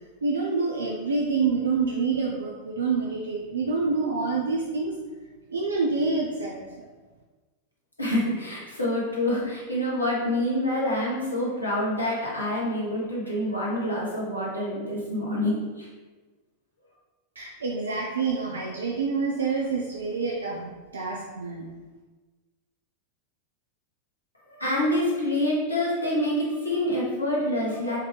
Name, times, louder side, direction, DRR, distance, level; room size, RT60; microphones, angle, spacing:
voice 1, 0.2-4.9 5.5-6.6 17.4-21.7, right 4 dB, 70° right, -1 dB, 0.5 m, -27 dB
voice 2, 8.0-15.9 24.5-28.0, left 1 dB, 80° left, -5 dB, 1.3 m, -27 dB
4.5 x 3.4 x 3.3 m, 1.3 s
figure-of-eight pair, 90°, 0 cm